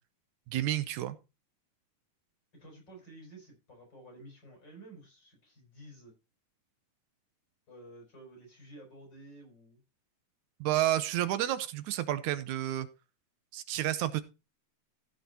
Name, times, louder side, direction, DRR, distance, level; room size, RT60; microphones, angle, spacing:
voice 1, 0.5-1.2 10.6-12.9 13.5-14.2, right 13 dB, 85° right, 13 dB, 2.3 m, -30 dB
voice 2, 2.5-6.1 7.7-9.8, right 1 dB, 35° left, 1 dB, 6.4 m, -52 dB
15.0 x 5.8 x 4.3 m, 0.28 s
omnidirectional pair, 3.3 m